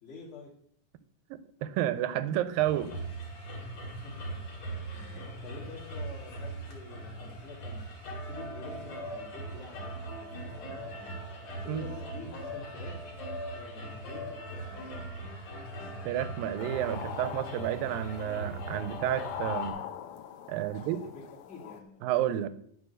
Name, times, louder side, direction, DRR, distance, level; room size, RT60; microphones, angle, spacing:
voice 1, 0.0-0.5 3.9-4.4 4.9-7.8 8.2-11.2 11.6-13.1 13.5-15.0 20.7-22.1, left 4 dB, 20° left, -7 dB, 2.9 m, -48 dB
voice 2, 1.3-2.9 11.7-11.8 16.1-19.8 20.5-21.0 22.0-22.5, right 12 dB, 85° right, 14 dB, 2.4 m, -31 dB
sound 1, 2.6-19.7, right 1 dB, 55° left, 3.1 m, -40 dB
sound 2, 16.6-21.8, left 10 dB, 75° left, 1.6 m, -42 dB
11.0 x 5.0 x 6.4 m, 0.64 s
omnidirectional pair, 4.0 m